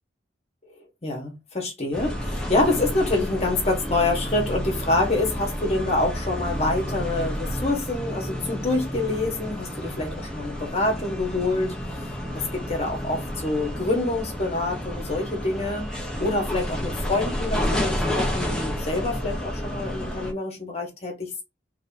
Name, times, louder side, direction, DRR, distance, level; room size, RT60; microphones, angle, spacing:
voice 1, 1.0-12.0 12.3-21.4, left 2 dB, 35° left, 1.4 m, -26 dB
sound 1, 1.9-20.3, equal, 5° left, 0.9 m, -30 dB
3.3 x 2.9 x 4.0 m
head